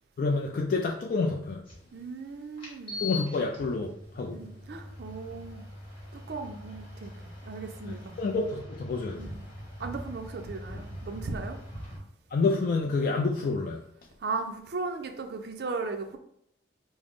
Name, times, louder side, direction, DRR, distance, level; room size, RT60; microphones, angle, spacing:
voice 1, 0.2-1.6 3.0-4.4 7.9-9.3 12.3-13.8, left 3 dB, 50° left, 0 dB, 0.3 m, -28 dB
sound 1, 1.7-1.8 2.6-12.0, left 2 dB, 30° left, 1.1 m, -42 dB
voice 2, 1.9-3.1 4.3-5.6 6.1-7.1 7.4-8.2 9.2-9.4 9.8-11.6 14.2-16.2, right 4 dB, 60° right, 6 dB, 0.4 m, -37 dB
3.6 x 2.0 x 3.5 m, 0.73 s
head